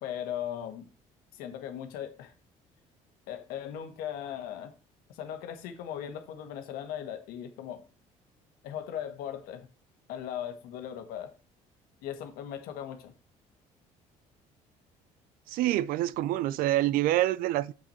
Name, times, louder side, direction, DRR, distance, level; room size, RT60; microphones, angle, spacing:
voice 1, 0.0-0.9 1.3-2.3 3.3-4.7 5.1-7.8 8.6-9.7 10.1-11.3 12.0-13.1, left 10 dB, 80° left, 1.4 m, -38 dB
voice 2, 15.5-17.7, right 15 dB, 75° right, 0.5 m, -26 dB
7.2 x 5.9 x 4.4 m
supercardioid pair, 80°, 15 cm